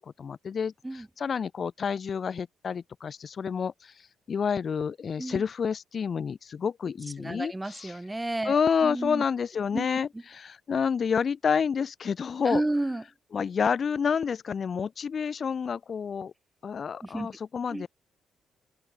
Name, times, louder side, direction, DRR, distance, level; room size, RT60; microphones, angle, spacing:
voice 1, 0.2-3.9 4.3-7.9 8.4-12.6 13.3-16.3 16.6-17.9, left 6 dB, 45° left, 0.6 m, -29 dB
voice 2, 7.2-9.2 9.7-9.9 12.4-13.0 17.0-17.3 17.7-17.9, right 2 dB, 10° right, 1.2 m, -31 dB
open air
cardioid pair, 90°, 0 cm